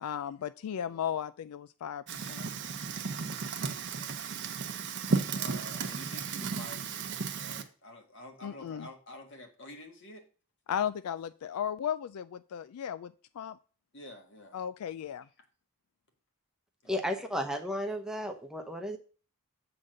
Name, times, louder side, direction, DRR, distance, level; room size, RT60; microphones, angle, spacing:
voice 1, 0.0-2.5 8.4-8.9 10.7-13.6 14.5-15.3, left 9 dB, 80° left, 15 dB, 0.3 m, -35 dB
voice 2, 0.7-1.0 3.6-4.7 5.3-10.3 13.9-14.6 16.8-17.1, left 1 dB, 55° left, 4 dB, 1.7 m, -50 dB
Fire, 2.1-7.6, right 4 dB, 55° right, 0.8 m, -34 dB
voice 3, 16.9-19.0, equal, 5° right, 5 dB, 0.7 m, -33 dB
7.6 x 3.9 x 6.4 m, 0.37 s
head